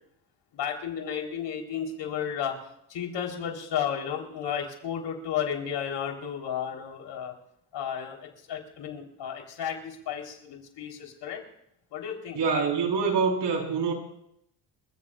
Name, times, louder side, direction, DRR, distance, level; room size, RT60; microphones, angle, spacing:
voice 1, 0.5-2.5 2.9-7.3 7.7-11.4 11.9-12.4, left 8 dB, 75° left, 1 dB, 4.3 m, -33 dB
voice 2, 12.3-13.9, right 5 dB, 70° right, 0 dB, 4.9 m, -25 dB
30.0 x 16.0 x 2.6 m, 0.76 s
cardioid pair, 100°, 43 cm